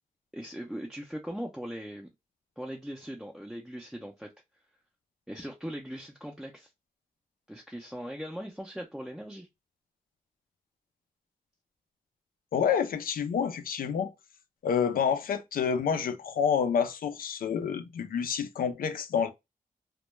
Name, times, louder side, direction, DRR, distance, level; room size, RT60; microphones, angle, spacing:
voice 1, 0.3-2.1 2.6-4.3 5.3-6.7 7.5-9.5, equal, 5° right, 0.4 m, -39 dB
voice 2, 12.5-14.1 14.6-19.3, left 7 dB, 85° left, 0.4 m, -28 dB
2.2 x 2.1 x 2.9 m
wide cardioid pair, 115°, 14 cm